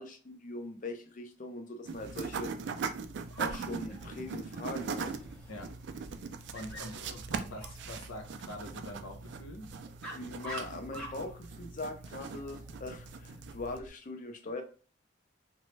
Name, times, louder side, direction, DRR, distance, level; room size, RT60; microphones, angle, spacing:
voice 1, 0.0-2.5 3.4-5.2 10.1-14.6, left 2 dB, 40° left, 5 dB, 0.5 m, -41 dB
sound 1, 1.9-13.8, right 5 dB, 60° right, 0.3 m, -40 dB
Dog, 3.3-13.9, equal, 5° left, 0.8 m, -50 dB
voice 2, 6.5-9.7, left 1 dB, 80° left, 3 dB, 0.8 m, -45 dB
3.1 x 2.2 x 3.1 m, 0.39 s
head